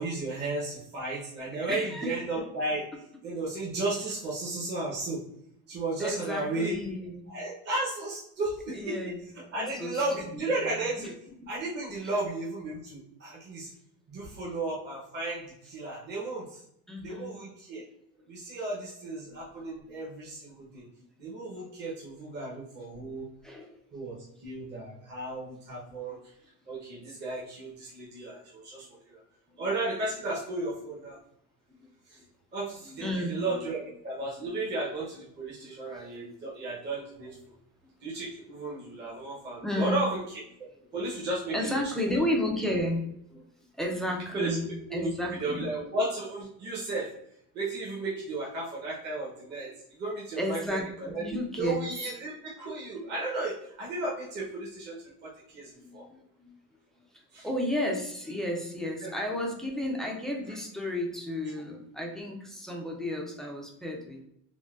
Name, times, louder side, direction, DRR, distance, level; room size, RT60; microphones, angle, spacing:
voice 1, 0.0-2.9 3.2-5.2 5.7-6.8 7.3-11.1 11.5-13.7 14.1-16.6 17.0-17.8 18.3-20.8 21.2-23.3 23.9-26.2 26.7-29.2 29.6-31.2 32.1-32.2 32.5-37.4 38.0-41.8 44.3-44.6 44.9-45.1 45.4-47.1 47.5-51.3 51.6-56.1 57.3-57.5 59.0-59.1, right 2 dB, 30° right, -5 dB, 0.7 m, -34 dB
voice 2, 1.7-2.1 6.0-7.3 8.7-9.2 9.5-10.4 11.0-11.1 16.9-17.4 23.4-23.8 31.8-31.9 32.9-33.4 34.5-34.6 36.2-36.3 39.6-40.0 41.5-43.4 43.7-45.7 50.4-51.8 55.9-56.5 57.1-64.2, left 1 dB, ahead, 0 dB, 0.3 m, -33 dB
3.7 x 2.1 x 2.3 m, 0.73 s
cardioid pair, 130°, 37 cm